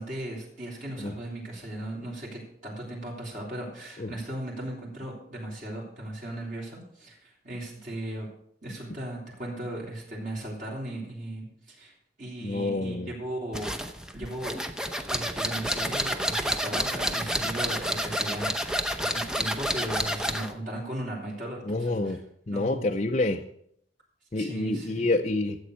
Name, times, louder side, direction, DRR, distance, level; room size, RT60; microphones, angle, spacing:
voice 1, 0.0-8.3 8.6-11.9 12.2-13.7 14.1-14.6 15.1-22.2 22.5-22.8 24.4-25.1, right 1 dB, 45° right, -4 dB, 3.5 m, -37 dB
voice 2, 12.4-13.1 21.7-22.2 22.5-23.4 24.3-25.6, left 2 dB, 35° left, 3 dB, 0.6 m, -27 dB
sound 1, 13.5-20.5, equal, 5° right, 0.7 m, -29 dB
13.0 x 8.0 x 6.4 m, 0.68 s
head